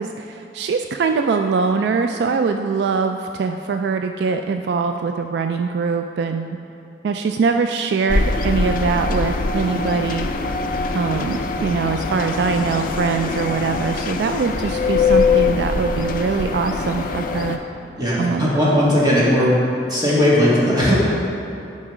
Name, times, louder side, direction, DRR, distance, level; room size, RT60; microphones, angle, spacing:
voice 1, 0.0-6.6 7.0-10.3 10.9-17.6 18.1-18.5, right 5 dB, 65° right, 6 dB, 0.3 m, -22 dB
sound 1, 8.1-17.6, left 4 dB, 50° left, 0.5 m, -22 dB
voice 2, 18.0-19.5 19.9-21.0, equal, 25° right, -7 dB, 2.0 m, -17 dB
8.5 x 5.4 x 4.9 m, 2.8 s
head